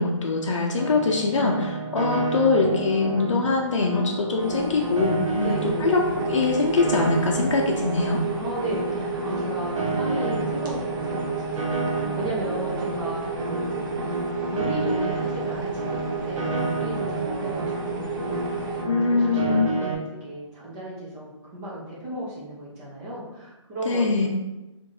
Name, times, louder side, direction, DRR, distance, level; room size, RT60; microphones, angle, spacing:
voice 1, 0.0-6.0 6.3-8.2 18.9-19.7 23.9-24.3, left 3 dB, 70° left, -1 dB, 0.6 m, -23 dB
Piano, 0.8-19.9, right 3 dB, 80° right, 0.8 m, -30 dB
sound 1, 4.4-18.8, right 4 dB, 40° right, 0.8 m, -32 dB
voice 2, 5.4-6.0 8.3-24.3, equal, 10° right, -6 dB, 0.5 m, -35 dB
4.6 x 2.6 x 2.6 m, 1.0 s
hypercardioid pair, 160°, 16 cm